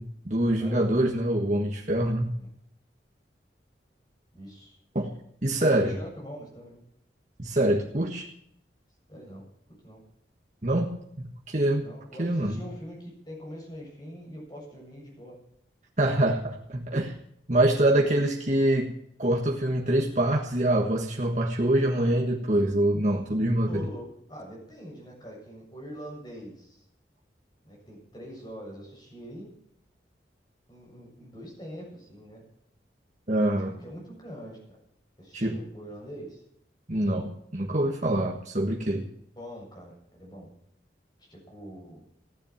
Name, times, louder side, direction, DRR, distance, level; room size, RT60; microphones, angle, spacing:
voice 1, 0.0-2.3 4.9-5.1 5.4-6.0 7.4-8.3 10.6-10.9 11.2-11.8 12.2-12.6 16.0-17.1 17.5-18.9 19.2-23.9 33.3-33.7 35.3-35.5 36.9-39.1, right 1 dB, 40° right, -1 dB, 1.5 m, -25 dB
voice 2, 0.6-1.0 2.3-2.5 4.3-4.7 5.5-6.8 9.1-9.4 9.8-10.0 11.8-15.4 23.7-26.8 27.6-29.5 30.7-32.4 33.5-34.6 35.2-36.4 39.4-40.5 41.3-42.0, equal, 25° left, -2 dB, 7.4 m, -43 dB
15.5 x 10.5 x 7.3 m, 0.72 s
head